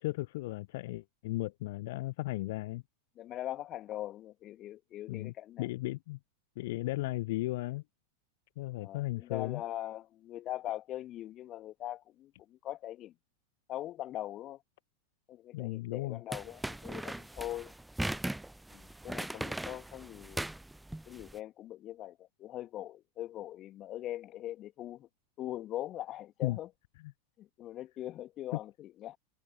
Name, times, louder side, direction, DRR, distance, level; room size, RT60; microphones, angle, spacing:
voice 1, 0.0-2.8 5.1-6.2 6.6-7.8 8.6-9.6 15.5-16.2 26.4-26.6 27.0-27.1, left 19 dB, 50° left, 1.1 m, -35 dB
voice 2, 3.2-5.7 8.8-13.1 13.7-14.6 15.3-17.7 18.7-20.5 21.1-25.1 25.4-26.7 27.4-29.2, left 13 dB, 35° left, 2.3 m, -41 dB
sound 1, 16.3-21.3, right 1 dB, 5° right, 0.5 m, -39 dB
figure-of-eight pair, 90°, 0 cm